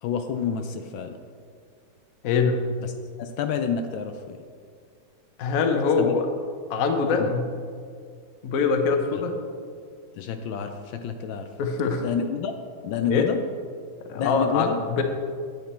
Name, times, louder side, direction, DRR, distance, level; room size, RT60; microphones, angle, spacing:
voice 1, 0.0-1.2 2.8-2.9 3.2-4.4 6.0-6.2 7.2-7.3 10.2-11.5 12.0-12.5 12.8-13.4 14.2-14.8, left 7 dB, 75° left, 7 dB, 1.3 m, -28 dB
voice 2, 2.2-2.7 5.4-6.2 6.7-7.5 8.4-9.3 11.6-12.0 13.1-13.3 14.1-15.0, left 5 dB, 55° left, 4 dB, 1.1 m, -23 dB
9.3 x 8.2 x 4.2 m, 2.1 s
omnidirectional pair, 2.2 m